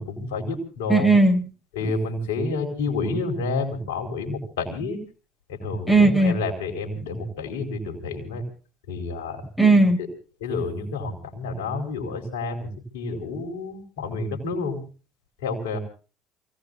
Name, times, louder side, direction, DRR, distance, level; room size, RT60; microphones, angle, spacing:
voice 1, 0.0-1.1 1.7-5.0 5.5-8.4 8.9-9.4 10.4-14.8 15.4-15.8, left 3 dB, 80° left, 3 dB, 4.5 m, -29 dB
voice 2, 0.9-1.4 1.8-1.9 5.9-6.4 9.6-10.0, right 2 dB, ahead, 1 dB, 7.0 m, -17 dB
28.5 x 18.5 x 2.7 m, 0.37 s
hypercardioid pair, 60°, 0 cm